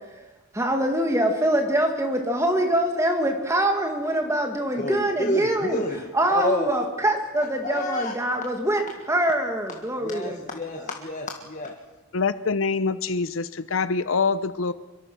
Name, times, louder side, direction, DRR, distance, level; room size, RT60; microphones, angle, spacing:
voice 1, 0.5-5.8 6.1-8.8 9.1-10.4, right 1 dB, 15° right, 2.0 m, -24 dB
voice 2, 4.8-6.0 6.3-6.7 7.4-8.1 10.0-11.7, left 1 dB, 35° left, 1.8 m, -29 dB
voice 3, 12.1-14.7, left 4 dB, 70° left, 0.7 m, -25 dB
24.5 x 23.0 x 6.1 m
head